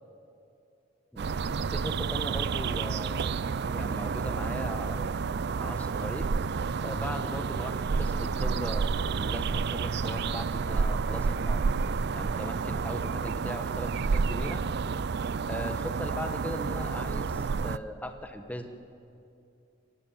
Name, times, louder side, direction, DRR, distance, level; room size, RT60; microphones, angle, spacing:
voice 1, 1.1-3.4 3.7-5.1 5.6-6.3 6.8-8.9 9.1-11.6 12.1-14.6 15.5-18.7, equal, 10° left, 6 dB, 1.3 m, -39 dB
sound 1, 1.2-17.8, right 5 dB, 55° right, 0.4 m, -30 dB
22.0 x 16.5 x 9.1 m, 2.6 s
head